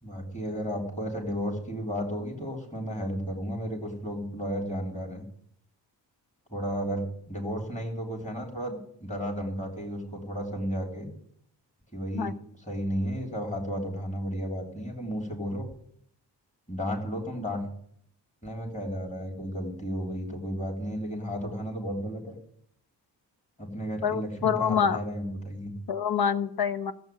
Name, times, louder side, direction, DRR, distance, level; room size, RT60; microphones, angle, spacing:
voice 1, 0.0-5.2 6.5-11.1 11.9-15.7 16.7-17.7 18.4-22.4 23.6-25.7, equal, 15° left, 1 dB, 3.6 m, -33 dB
voice 2, 24.0-25.0 25.9-26.9, left 7 dB, 60° left, 13 dB, 1.1 m, -26 dB
14.5 x 7.9 x 9.4 m, 0.67 s
cardioid pair, 75°, 42 cm